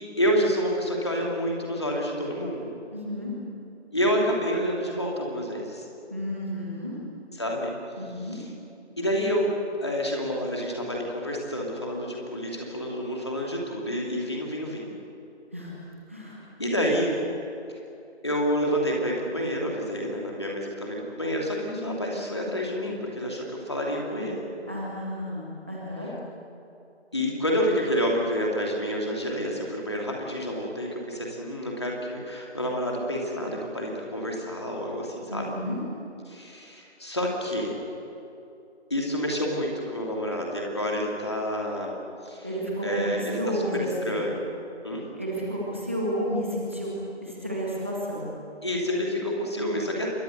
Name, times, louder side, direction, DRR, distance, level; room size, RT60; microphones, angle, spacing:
voice 1, 0.2-2.7 3.9-5.8 7.4-7.7 8.3-8.4 9.0-9.5 9.8-14.9 16.6-17.2 18.2-24.4 27.1-35.5 36.3-37.7 38.9-42.0 42.2-42.5 42.8-43.7 44.0-44.4 44.8-45.1 48.6-50.1, equal, 25° left, -1 dB, 2.7 m, -28 dB
voice 2, 2.9-3.3 6.1-6.9 8.0-8.4 15.5-15.7 16.1-16.4 24.7-26.1 35.3-35.8 42.4-44.2 45.2-48.3, equal, 10° right, -5 dB, 1.9 m, -31 dB
27.5 x 23.0 x 6.6 m, 2.7 s
figure-of-eight pair, 170°, 35 cm